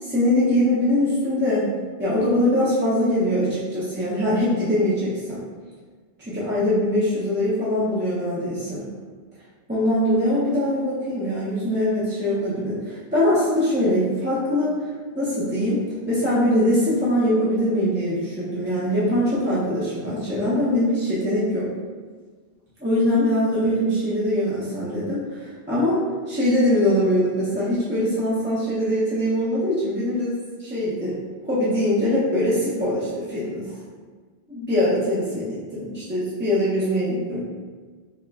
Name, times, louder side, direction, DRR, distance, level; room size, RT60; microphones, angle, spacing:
voice 1, 0.0-1.7 2.0-5.4 6.2-8.9 9.7-14.8 15.1-21.7 22.8-26.0 26.3-31.1 31.4-33.7 34.5-37.4, left 1 dB, 15° right, -10 dB, 0.5 m, -22 dB
3.6 x 2.1 x 3.4 m, 1.5 s
omnidirectional pair, 1.1 m